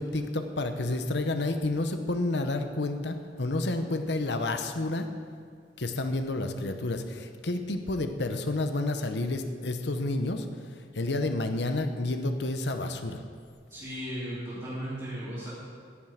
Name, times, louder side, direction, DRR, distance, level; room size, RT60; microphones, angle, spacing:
voice 1, 0.0-5.1 5.8-10.5 10.9-13.2, left 2 dB, 65° left, 7 dB, 0.9 m, -30 dB
voice 2, 13.7-15.5, equal, 25° right, -11 dB, 3.6 m, -36 dB
11.0 x 7.5 x 9.3 m, 2.1 s
head